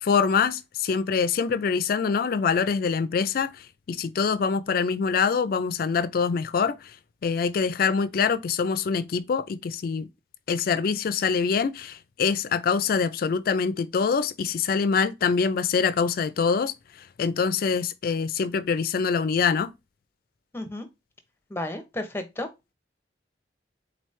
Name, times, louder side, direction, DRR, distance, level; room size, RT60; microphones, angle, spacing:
voice 1, 0.0-7.0 7.2-10.1 10.5-19.7, left 5 dB, 50° left, 0.3 m, -25 dB
voice 2, 20.5-20.9 21.5-22.5, left 1 dB, 10° left, 0.6 m, -32 dB
4.0 x 3.0 x 3.1 m
head